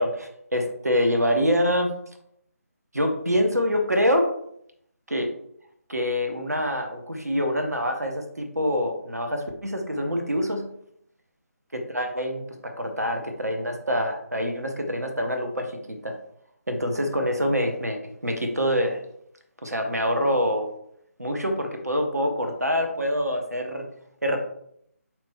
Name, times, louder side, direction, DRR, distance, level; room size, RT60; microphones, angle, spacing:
voice 1, 0.0-1.9 2.9-4.3 5.1-5.3 5.9-10.6 11.7-16.2 16.7-19.0 19.6-20.7 21.2-23.8 24.2-24.4, equal, 85° right, 4 dB, 1.0 m, -25 dB
4.0 x 3.1 x 3.6 m, 0.70 s
figure-of-eight pair, 150°, 8 cm